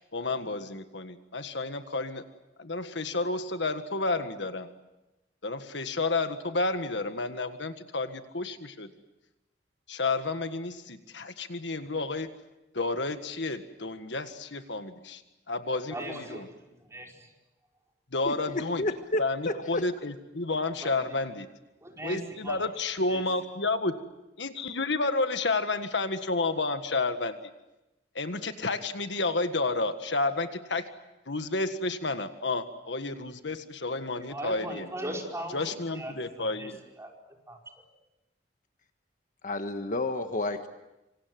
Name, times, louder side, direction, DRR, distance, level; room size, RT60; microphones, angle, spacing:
voice 1, 0.1-2.2 2.6-4.7 5.4-8.9 9.9-12.3 12.7-15.0 15.5-15.9 16.3-16.5 18.1-18.9 19.2-21.5 22.0-23.9 24.4-27.4 28.2-30.9 31.3-34.9 35.5-36.8, left 3 dB, 70° left, 8 dB, 1.7 m, -31 dB
voice 2, 15.9-16.4 16.8-17.3 20.8-21.1 21.8-22.7 23.1-23.3 34.2-37.1 37.5-37.7, right 1 dB, 15° right, 0 dB, 5.1 m, -39 dB
voice 3, 18.2-19.8 39.4-40.7, left 2 dB, 45° left, 7 dB, 1.4 m, -31 dB
26.5 x 26.0 x 7.8 m, 0.97 s
head